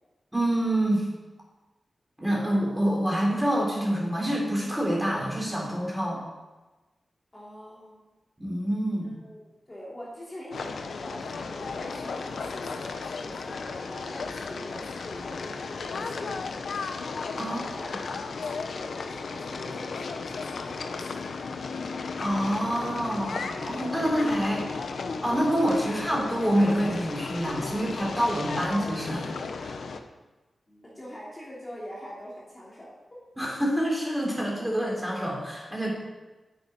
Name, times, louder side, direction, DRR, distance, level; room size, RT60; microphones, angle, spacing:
voice 1, 0.3-1.1 2.2-6.2 8.4-9.1 17.4-17.6 22.2-24.6 25.2-29.3 29.6-29.8 33.4-35.9, equal, 5° right, -3 dB, 3.8 m, -27 dB
voice 2, 7.3-8.0 9.0-16.7 17.4-21.5 30.7-33.2, equal, 20° left, -6 dB, 2.8 m, -44 dB
sound 1, 10.5-30.0, left 4 dB, 85° left, 1.0 m, -35 dB
9.7 x 8.9 x 9.3 m, 1.2 s
wide cardioid pair, 175°, 0 cm